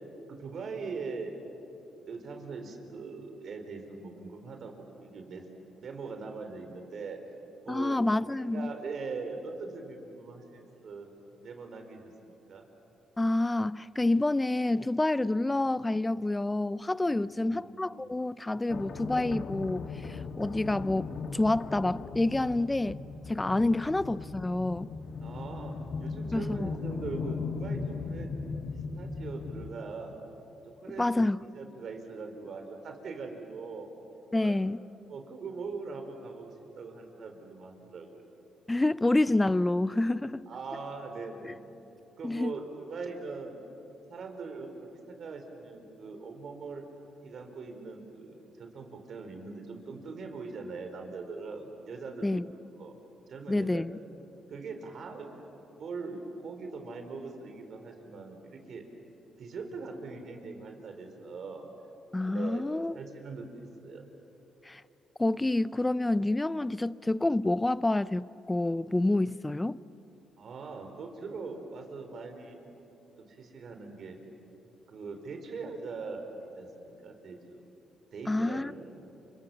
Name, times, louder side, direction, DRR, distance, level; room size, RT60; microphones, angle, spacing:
voice 1, 0.3-1.3 2.1-5.4 5.8-7.2 7.6-8.0 8.4-11.1 11.4-12.7 17.2-17.6 23.8-23.9 25.2-28.3 28.7-30.1 30.6-31.1 31.5-34.6 35.1-38.3 40.5-41.6 42.2-43.6 44.1-46.8 47.2-52.4 52.8-52.9 53.3-54.0 54.5-55.4 55.8-58.8 59.4-61.7 62.3-64.0 66.8-66.9 70.4-72.6 73.2-74.2 74.9-77.6 78.1-79.1, right 4 dB, 55° right, 4.2 m, -41 dB
voice 2, 7.7-8.7 13.2-23.0 23.3-24.9 26.3-26.7 31.0-31.4 34.3-34.8 38.7-40.5 41.4-41.5 42.2-42.5 52.2-52.5 53.5-53.9 62.1-62.9 64.6-64.8 65.2-69.8 78.3-78.7, left 2 dB, 15° left, 0.6 m, -28 dB
sound 1, 18.7-29.8, left 4 dB, 55° left, 1.5 m, -38 dB
29.0 x 26.5 x 7.3 m
cardioid pair, 90°, 0 cm